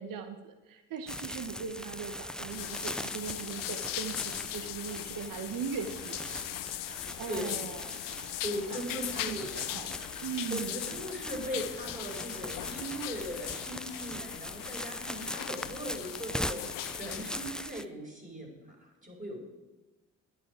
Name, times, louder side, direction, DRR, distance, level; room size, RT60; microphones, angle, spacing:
voice 1, 0.0-6.2 7.2-8.0 8.7-9.9 10.2-10.8, right 6 dB, 60° right, 8 dB, 1.2 m, -39 dB
sound 1, 1.1-17.9, left 1 dB, ahead, 0.4 m, -41 dB
sound 2, 2.5-17.5, left 15 dB, 60° left, 0.6 m, -40 dB
voice 2, 7.3-7.8 8.4-9.5 9.9-10.1 10.5-19.4, equal, 20° right, -1 dB, 4.8 m, -39 dB
11.0 x 10.0 x 5.0 m, 1.2 s
supercardioid pair, 65°, 37 cm